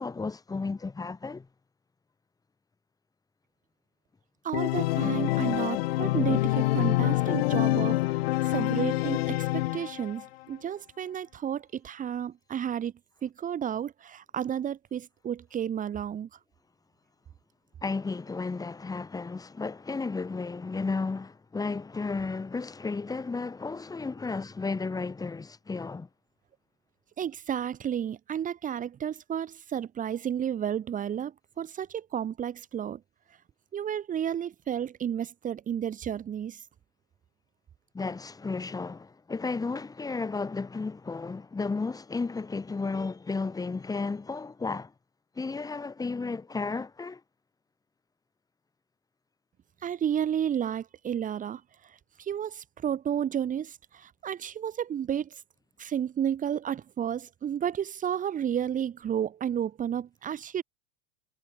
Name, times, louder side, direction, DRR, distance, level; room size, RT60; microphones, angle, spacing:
voice 1, 0.0-1.5 17.8-26.1 37.9-44.9 45.4-47.2, left 4 dB, 10° left, 7.7 m, -33 dB
voice 2, 4.4-8.2 8.4-12.9 13.2-16.3 27.2-33.0 33.7-36.6 49.8-55.4 55.8-60.6, right 9 dB, 25° right, 4.1 m, -32 dB
Organ, 4.5-10.3, left 18 dB, 75° left, 1.3 m, -26 dB
supercardioid pair, 135°, 30 cm